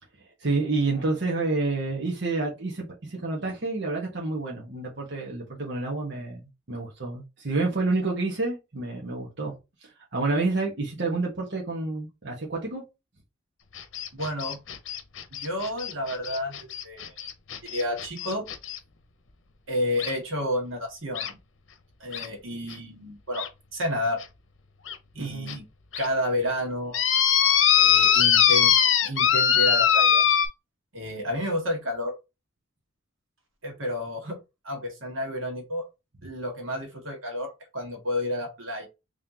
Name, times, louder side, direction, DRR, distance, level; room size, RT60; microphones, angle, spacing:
voice 1, 0.4-9.5 9.8-12.8 25.2-25.6, right 3 dB, 60° right, 1.2 m, -29 dB
sound 1, 13.8-18.8 20.0-20.1 21.2-21.3 22.1-22.3 22.7-22.8 23.3-23.5 24.2-24.3 24.9-25.0 25.5-25.6 25.9-26.1 26.9-30.5, left 8 dB, 75° left, 0.8 m, -22 dB
voice 2, 14.1-14.6 15.3-17.2 17.6-18.4 19.7-21.4 22.0-24.2 25.1-25.6 26.0-27.0 27.7-28.7 29.0-30.2 30.9-32.1 33.6-34.4 34.6-35.8 36.2-38.9, left 1 dB, 90° right, 1.8 m, -30 dB
3.8 x 3.3 x 2.8 m
head